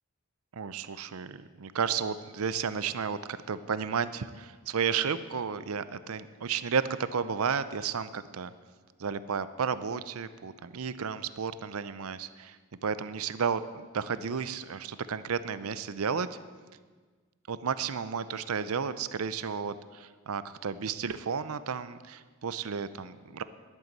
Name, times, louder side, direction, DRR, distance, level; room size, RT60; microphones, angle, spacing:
voice 1, 0.5-6.8 7.1-8.5 9.0-12.6 12.8-16.4 17.5-23.4, right 6 dB, 80° right, 14 dB, 0.6 m, -32 dB
11.0 x 9.3 x 7.9 m, 1.5 s
head